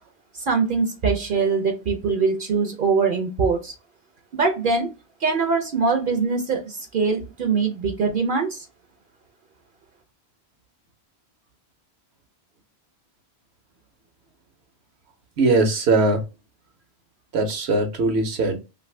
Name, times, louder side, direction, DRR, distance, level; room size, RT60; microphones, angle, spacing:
voice 1, 0.3-3.7 4.3-4.9 5.2-8.7, right 4 dB, 60° right, 0.7 m, -23 dB
voice 2, 15.4-16.2 17.3-18.6, right 2 dB, 80° right, 1.0 m, -20 dB
2.6 x 2.5 x 3.1 m
omnidirectional pair, 1.1 m